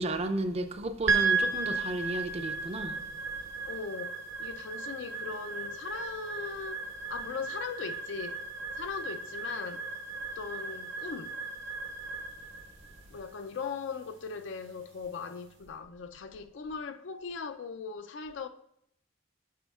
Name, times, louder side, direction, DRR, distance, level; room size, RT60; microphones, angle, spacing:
voice 1, 0.0-3.0, right 1 dB, 30° right, 0.4 m, -33 dB
sound 1, 1.1-15.4, right 4 dB, 70° right, 0.9 m, -35 dB
voice 2, 3.7-8.4 8.8-9.9 10.3-11.4 13.1-18.5, left 5 dB, 65° left, 0.4 m, -39 dB
9.3 x 6.1 x 2.4 m
head